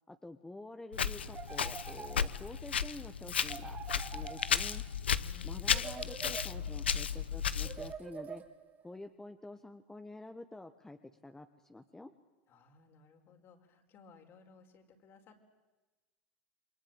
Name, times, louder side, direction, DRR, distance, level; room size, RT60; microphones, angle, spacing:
voice 1, 0.1-3.8 4.1-4.8 5.4-8.4 8.8-11.0 11.2-12.1, left 2 dB, 10° left, 7 dB, 1.5 m, -48 dB
Walk footsteps, 0.9-7.9, left 7 dB, 90° left, 0.9 m, -34 dB
sound 1, 1.3-2.6 3.5-5.0 5.7-6.9 7.6-8.8, right 7 dB, 30° right, 2.9 m, -46 dB
voice 2, 5.1-5.8 12.5-15.4, left 4 dB, 45° left, 4 dB, 5.0 m, -59 dB
28.0 x 23.0 x 9.1 m, 1.2 s
hypercardioid pair, 90°, 6 cm